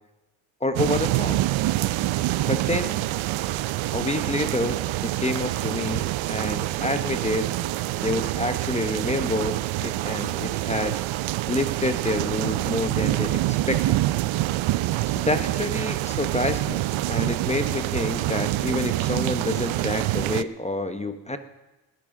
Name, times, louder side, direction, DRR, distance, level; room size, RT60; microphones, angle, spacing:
voice 1, 0.6-1.4 2.4-3.0 3.9-7.5 8.0-11.0 11.5-14.0 15.1-16.8 17.1-21.4, left 2 dB, 15° left, 9 dB, 0.8 m, -28 dB
sound 1, 0.8-20.4, right 16 dB, 80° right, 0.6 m, -26 dB
20.0 x 12.5 x 3.8 m, 1.1 s
cardioid pair, 90°, 47 cm